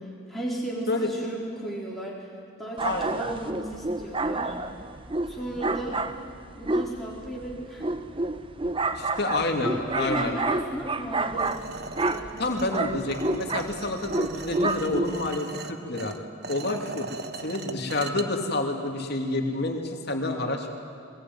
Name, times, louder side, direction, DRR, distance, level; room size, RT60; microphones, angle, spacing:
voice 1, 0.3-2.2 2.6-4.6 5.3-6.0 6.5-7.9 9.6-11.6 12.0-12.5, right 1 dB, ahead, -4 dB, 4.3 m, -35 dB
voice 2, 2.8-3.4 8.9-10.4 12.4-16.1 16.5-17.1 17.4-20.7, left 2 dB, 50° left, 3 dB, 2.7 m, -29 dB
sound 1, 2.8-15.4, right 2 dB, 25° right, 0.8 m, -30 dB
sound 2, 11.4-18.2, right 4 dB, 50° right, 1.2 m, -40 dB
23.0 x 21.0 x 9.5 m, 2.5 s
head